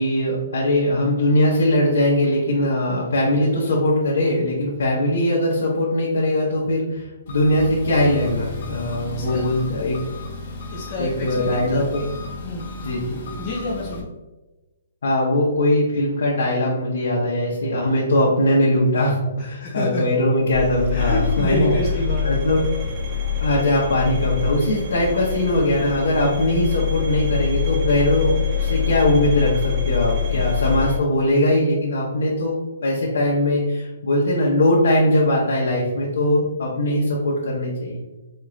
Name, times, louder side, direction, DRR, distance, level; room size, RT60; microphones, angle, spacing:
voice 1, 0.0-9.9 11.0-12.0 12.8-13.1 15.0-21.7 22.2-22.6 23.4-32.5 32.8-38.0, left 1 dB, 75° left, -4 dB, 0.9 m, -20 dB
Engine, 7.3-14.0, left 3 dB, 45° left, 0.9 m, -34 dB
voice 2, 9.1-9.5 10.7-11.8 12.4-12.7 13.4-14.1 19.4-20.2 20.9-22.6 23.1-23.2 30.3-30.6, left 2 dB, 20° left, -6 dB, 0.6 m, -28 dB
sound 1, 20.5-31.0, left 7 dB, 25° right, 0.8 m, -24 dB
4.4 x 2.5 x 3.1 m, 1.1 s
hypercardioid pair, 170°, 0 cm